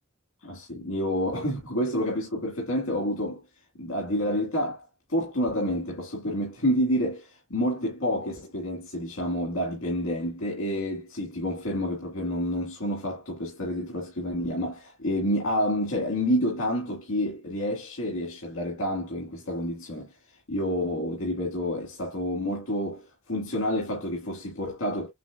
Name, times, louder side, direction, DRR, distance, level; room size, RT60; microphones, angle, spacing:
voice 1, 0.4-3.4 3.8-4.8 5.1-20.1 20.5-25.1, equal, 85° left, 1.9 m, -29 dB
7.2 x 3.1 x 2.4 m
head